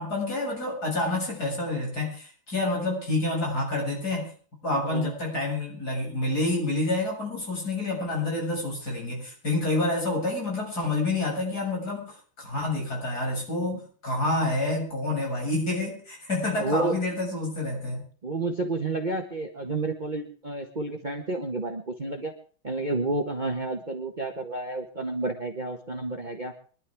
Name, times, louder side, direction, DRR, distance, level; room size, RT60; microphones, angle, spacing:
voice 1, 0.0-4.3 4.6-18.1, left 2 dB, 50° left, -1 dB, 7.7 m, -28 dB
voice 2, 4.8-5.1 16.6-16.9 18.2-22.3 22.6-26.5, right 2 dB, 25° right, 4 dB, 1.4 m, -30 dB
24.5 x 12.0 x 3.6 m, 0.42 s
omnidirectional pair, 2.2 m